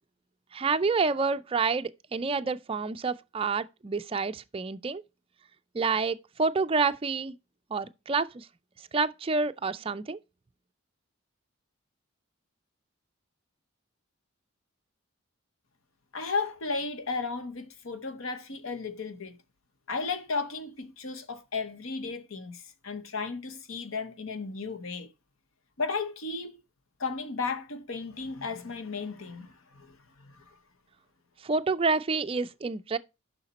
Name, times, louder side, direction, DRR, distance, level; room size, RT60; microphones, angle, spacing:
voice 1, 0.5-5.0 5.7-7.3 7.7-8.5 8.9-10.2 31.4-33.0, right 4 dB, 25° right, 0.4 m, -28 dB
voice 2, 16.1-19.4 19.9-25.1 25.8-26.6 27.0-30.6, left 4 dB, 70° left, 0.9 m, -34 dB
7.0 x 5.8 x 4.1 m
head